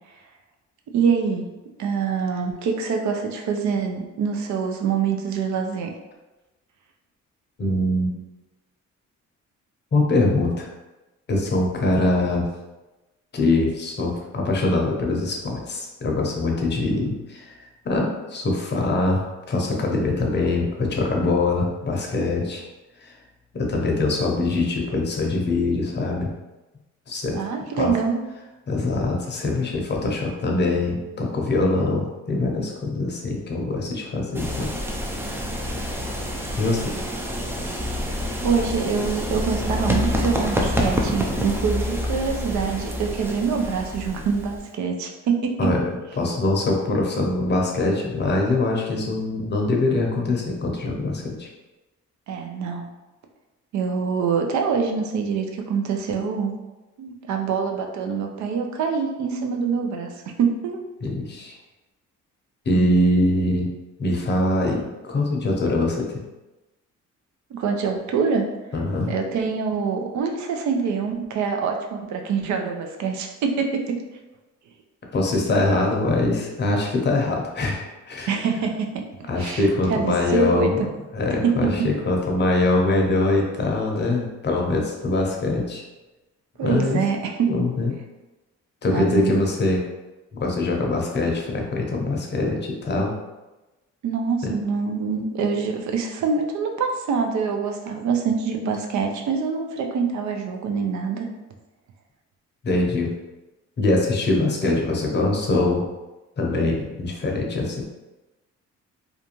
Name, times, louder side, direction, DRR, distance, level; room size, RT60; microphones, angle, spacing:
voice 1, 0.9-1.5 1.8-5.9 27.3-28.2 38.4-45.6 52.3-52.9 53.7-56.5 57.0-60.1 60.4-60.8 62.7-63.1 67.5-68.5 69.1-74.0 78.3-79.0 79.4-80.9 81.4-81.7 86.6-87.5 88.9-89.4 94.0-101.3, right 5 dB, 70° right, 4 dB, 0.5 m, -25 dB
voice 2, 7.6-8.1 9.9-10.7 11.3-12.5 13.3-22.6 23.0-23.2 23.5-26.3 27.1-27.4 27.7-27.9 28.7-34.7 35.2-35.3 36.6-36.9 45.6-51.5 61.0-61.6 62.7-63.7 64.0-66.2 68.7-69.1 75.1-78.3 79.3-80.8 81.1-85.8 86.6-87.0 87.4-87.9 88.8-89.8 90.4-93.1 94.4-94.5 102.6-103.1 103.8-105.9 106.4-107.8, left 2 dB, 35° left, 0 dB, 0.7 m, -23 dB
sound 1, 34.3-44.7, equal, 10° right, 0.3 m, -27 dB
2.5 x 2.2 x 2.9 m, 1.1 s
cardioid pair, 90°, 30 cm